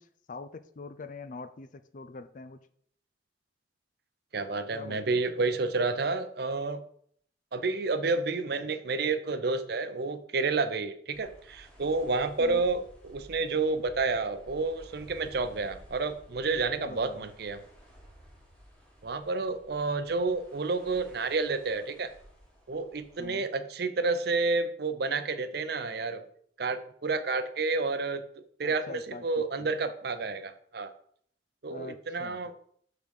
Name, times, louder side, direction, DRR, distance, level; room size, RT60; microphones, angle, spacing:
voice 1, 0.0-2.6 4.7-5.2 12.4-12.6 16.8-17.3 23.2-23.5 28.6-29.7 31.7-32.4, left 3 dB, 45° left, 11 dB, 0.4 m, -44 dB
voice 2, 4.3-6.8 7.5-17.6 19.0-22.1 22.7-26.2 26.6-28.2 28.6-30.9 31.6-32.5, right 3 dB, 60° right, 11 dB, 0.6 m, -30 dB
sound 1, 11.1-23.3, equal, 5° left, 1.9 m, -54 dB
6.9 x 3.9 x 6.4 m, 0.63 s
head